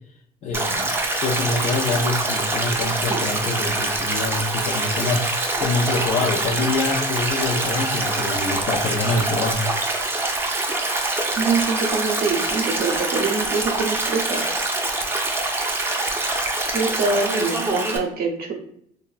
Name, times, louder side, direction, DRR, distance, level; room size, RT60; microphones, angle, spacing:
voice 1, 0.4-0.9 1.2-5.2 5.6-9.7, left 3 dB, 45° left, 0 dB, 0.4 m, -25 dB
Stream, 0.5-18.0, right 2 dB, 15° right, 0.4 m, -24 dB
voice 2, 11.4-14.6 16.7-18.5, right 4 dB, 60° right, 2 dB, 0.6 m, -24 dB
3.0 x 2.1 x 2.3 m, 0.69 s
cardioid pair, 110°, 17 cm